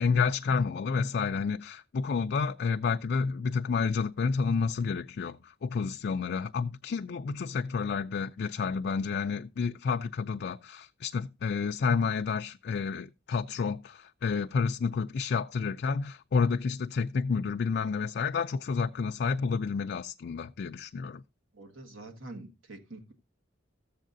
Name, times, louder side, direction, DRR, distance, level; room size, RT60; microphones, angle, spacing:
voice 1, 0.0-5.4 5.6-21.2, left 5 dB, 55° left, 0.4 m, -30 dB
voice 2, 21.5-23.1, right 2 dB, 80° right, 1.5 m, -46 dB
14.0 x 7.5 x 2.6 m
head